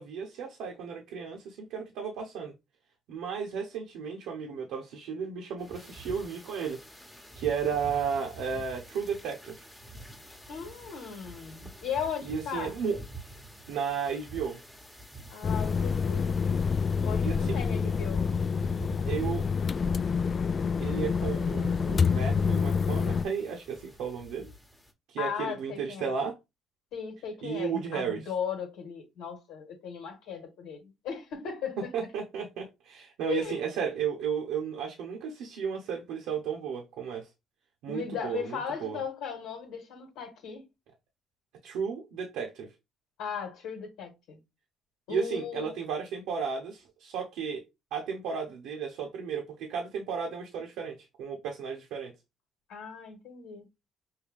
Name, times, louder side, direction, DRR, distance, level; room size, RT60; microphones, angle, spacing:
voice 1, 0.0-2.5 3.1-6.8 7.4-9.7 12.2-13.0 13.7-14.6 17.2-17.5 17.8-17.9 19.1-19.4 20.8-24.5 25.1-26.3 27.4-28.3 31.8-37.3 37.8-39.0 41.6-42.7 45.1-47.6 47.9-52.1, right 6 dB, 75° right, 0.8 m, -34 dB
sound 1, 5.6-24.9, right 1 dB, 5° left, 1.0 m, -47 dB
voice 2, 10.5-12.7 15.3-16.4 17.0-18.3 25.2-26.1 26.9-31.9 33.3-33.7 37.9-40.7 43.2-44.4 45.1-45.9 52.7-53.7, left 7 dB, 75° left, 1.3 m, -37 dB
sound 2, 15.4-23.2, left 6 dB, 45° left, 0.3 m, -27 dB
5.5 x 2.2 x 3.4 m
hypercardioid pair, 60°, 0 cm